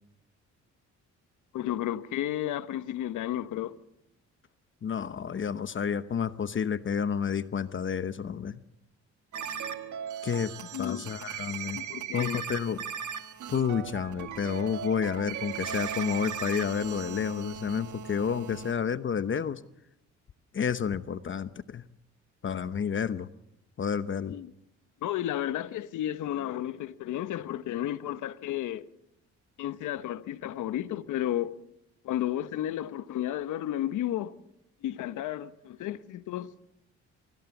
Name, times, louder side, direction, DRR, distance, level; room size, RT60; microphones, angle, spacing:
voice 1, 1.5-3.7 10.7-11.0 11.7-12.4 24.3-24.5 25.0-28.9 29.6-31.5 32.0-34.3 34.8-36.5, left 12 dB, 80° left, 1.1 m, -32 dB
voice 2, 4.8-8.6 10.2-11.8 12.1-12.8 13.5-19.6 20.5-21.8 22.4-23.3 23.8-24.4, left 7 dB, 40° left, 0.9 m, -30 dB
sound 1, 9.3-18.7, right 8 dB, 75° right, 1.8 m, -38 dB
25.0 x 16.5 x 7.2 m
cardioid pair, 90°, 30 cm